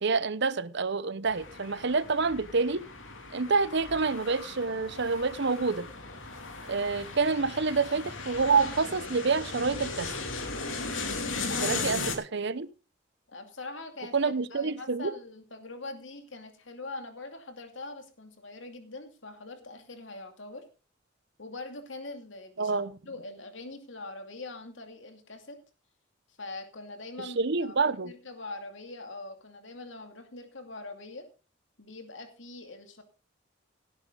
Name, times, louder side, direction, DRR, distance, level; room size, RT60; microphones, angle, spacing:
voice 1, 0.0-2.8 3.3-5.9 6.7-10.1 11.6-12.0 12.3-12.7 14.1-15.1 22.6-23.0 27.2-28.1, right 4 dB, 65° right, 16 dB, 0.9 m, -27 dB
sound 1, 1.2-12.2, left 3 dB, 85° left, 2.7 m, -37 dB
voice 2, 11.5-11.9 13.3-20.7 21.4-22.8 23.1-25.6 26.4-27.8 28.0-31.3 31.8-33.0, left 2 dB, 70° left, 6 dB, 2.6 m, -43 dB
17.5 x 9.6 x 3.9 m, 0.32 s
head